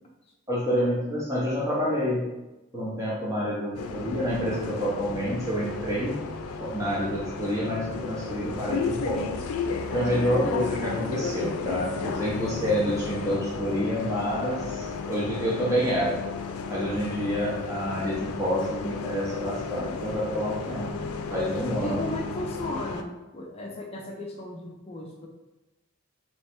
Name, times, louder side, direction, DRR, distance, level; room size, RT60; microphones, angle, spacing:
voice 1, 0.5-2.2 2.7-6.2 6.6-9.3 9.9-16.2 16.7-20.9 21.3-22.0, equal, 15° right, -7 dB, 0.7 m, -28 dB
Bus, 3.7-23.0, left 4 dB, 80° left, 0.4 m, -33 dB
voice 2, 21.8-25.3, left 1 dB, 25° left, 0 dB, 0.5 m, -36 dB
3.3 x 3.0 x 4.4 m, 1.0 s
head